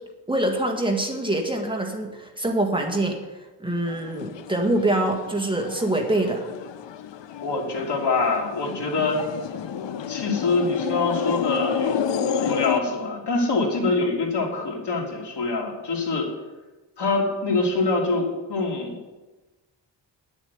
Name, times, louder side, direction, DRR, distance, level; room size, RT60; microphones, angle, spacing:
voice 1, 0.3-6.4, right 1 dB, 10° right, 1 dB, 1.8 m, -25 dB
sound 1, 3.9-12.8, left 7 dB, 85° left, 0.7 m, -30 dB
voice 2, 7.4-9.2 10.1-16.3 17.0-19.0, left 3 dB, 70° left, 0 dB, 2.9 m, -25 dB
10.5 x 7.2 x 9.5 m, 1.1 s
wide cardioid pair, 120°, 43 cm